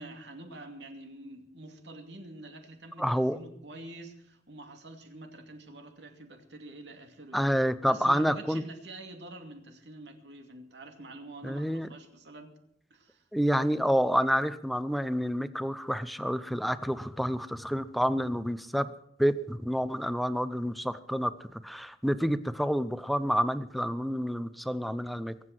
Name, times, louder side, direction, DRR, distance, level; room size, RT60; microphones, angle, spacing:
voice 1, 0.0-7.5 7.9-12.5 12.9-13.2, right 2 dB, 80° right, 5 dB, 2.6 m, -46 dB
voice 2, 3.0-3.4 7.3-8.6 11.4-11.9 13.3-18.9 19.2-25.3, equal, ahead, 13 dB, 0.6 m, -28 dB
23.0 x 8.1 x 6.1 m, 0.73 s
head